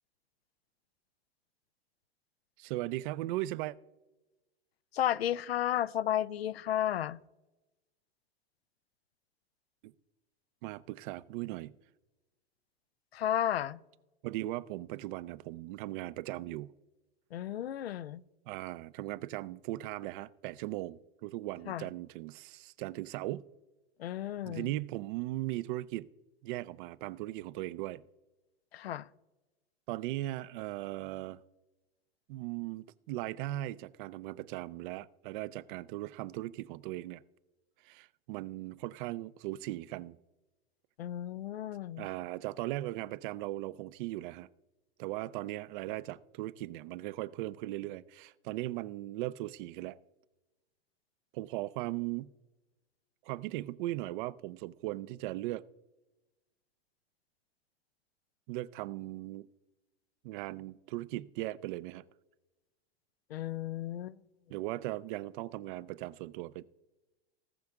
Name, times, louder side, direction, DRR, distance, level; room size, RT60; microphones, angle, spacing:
voice 1, 2.6-3.8 9.8-9.9 10.6-11.7 14.2-16.7 18.5-23.4 24.4-26.1 26.4-28.0 29.9-31.4 32.3-37.2 37.8-40.2 42.0-44.5 45.0-50.0 51.3-52.3 53.2-55.6 58.5-59.5 60.2-62.0 64.5-66.6, right 16 dB, 55° right, 0.5 m, -38 dB
voice 2, 4.9-7.2 13.1-13.8 17.3-18.2 21.7-21.9 24.0-24.8 28.7-29.1 41.0-42.1 63.3-64.2, left 11 dB, 85° left, 0.5 m, -33 dB
18.5 x 6.6 x 3.6 m
hypercardioid pair, 90°, 30 cm